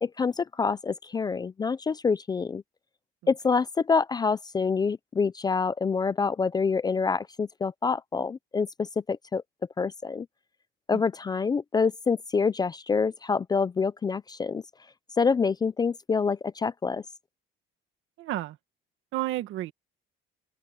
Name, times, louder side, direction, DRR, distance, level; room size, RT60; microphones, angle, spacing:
voice 1, 0.0-2.6 3.3-9.4 9.8-10.3 10.9-14.6 15.2-17.0, left 5 dB, 20° left, 0.4 m, -26 dB
voice 2, 18.2-18.6 19.1-19.7, right 15 dB, 70° right, 1.7 m, -31 dB
open air
cardioid pair, 155°, 21 cm